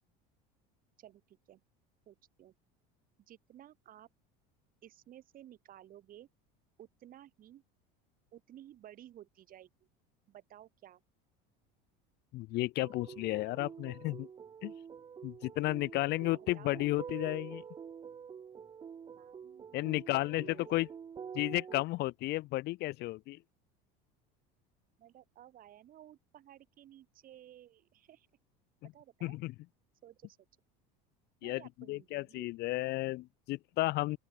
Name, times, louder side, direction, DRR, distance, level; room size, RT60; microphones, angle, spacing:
voice 1, 1.0-1.6 2.1-2.5 3.3-4.1 4.8-6.3 6.8-7.6 8.3-9.7 10.3-11.0 16.2-16.9 19.2-20.9 25.0-28.3 28.9-29.4 30.0-30.4 31.4-32.5, right 12 dB, 45° right, 4.4 m, -55 dB
voice 2, 12.3-14.3 14.6-14.7 15.2-17.6 19.7-20.9 21.3-23.4 29.2-29.5 31.4-31.6 31.9-34.2, left 19 dB, 55° left, 1.0 m, -33 dB
sound 1, 12.8-21.8, right 7 dB, 25° right, 0.7 m, -47 dB
open air
supercardioid pair, 120°, 20 cm